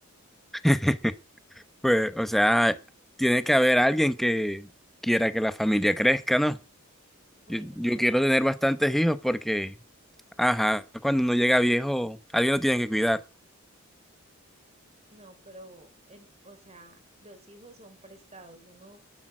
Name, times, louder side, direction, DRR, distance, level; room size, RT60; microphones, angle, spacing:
voice 1, 0.6-1.1 1.8-2.8 3.2-4.7 5.0-6.6 7.5-9.7 10.4-13.2, equal, ahead, 0.9 m, -23 dB
voice 2, 7.5-8.0 15.1-19.1, right 1 dB, 30° right, 4.0 m, -51 dB
12.0 x 12.0 x 6.2 m
head